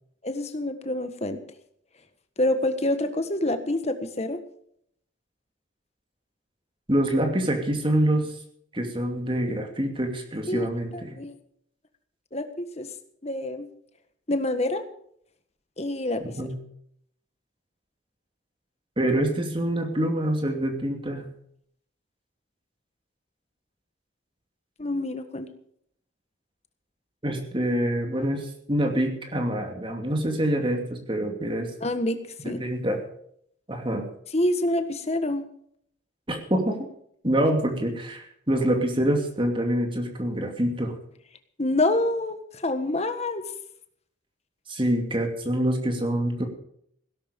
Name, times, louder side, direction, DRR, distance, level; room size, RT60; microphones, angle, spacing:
voice 1, 0.2-1.4 2.4-4.4 10.5-10.7 10.9-11.4 12.3-12.9 13.2-13.7 14.3-14.8 15.8-16.3 24.8-25.5 31.8-32.2 32.4-32.6 34.3-35.4 41.6-43.4, left 1 dB, 35° left, 9 dB, 1.5 m, -27 dB
voice 2, 6.9-8.3 8.7-11.1 16.2-16.6 19.0-21.3 27.2-31.7 32.4-33.0 33.7-34.0 36.3-36.8 37.2-41.0 44.7-46.4, right 1 dB, 25° right, 4 dB, 2.6 m, -26 dB
17.0 x 11.5 x 5.3 m, 0.67 s
head